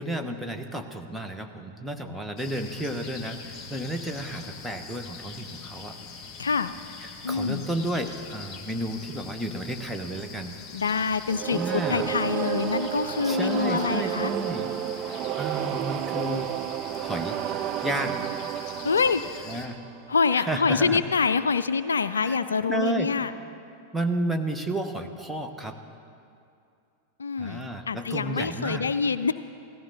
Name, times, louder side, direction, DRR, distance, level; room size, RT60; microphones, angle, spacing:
voice 1, 0.0-5.9 7.3-10.5 11.5-12.1 13.2-14.7 15.4-16.5 17.0-17.4 17.8-18.2 19.5-19.8 20.3-21.0 22.1-22.4 22.7-23.1 23.9-25.8 27.4-28.9, right 1 dB, 5° right, 4 dB, 1.0 m, -32 dB
sound 1, 2.4-19.7, left 5 dB, 25° left, 1.5 m, -43 dB
voice 2, 6.4-6.7 7.2-7.6 10.7-14.3 18.8-19.2 20.1-23.3 27.2-29.3, left 5 dB, 70° left, 13 dB, 0.3 m, -25 dB
sound 2, 11.3-20.2, right 12 dB, 35° right, 0.4 m, -31 dB
16.5 x 14.5 x 4.0 m, 2.5 s
figure-of-eight pair, 90°, 0 cm